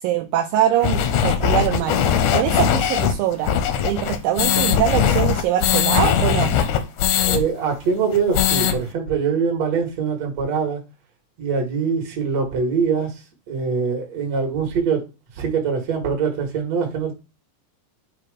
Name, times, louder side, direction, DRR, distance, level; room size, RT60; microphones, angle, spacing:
voice 1, 0.0-2.0 2.3-3.5 3.8-6.5, right 11 dB, 80° right, 2.3 m, -22 dB
sound 1, 0.8-7.4 7.7-7.8 8.1-8.7, left 9 dB, 75° left, 1.9 m, -20 dB
voice 2, 7.2-10.8 11.4-13.1 13.5-15.0 15.4-17.1, right 5 dB, 55° right, 2.6 m, -23 dB
8.6 x 2.9 x 4.9 m
omnidirectional pair, 4.2 m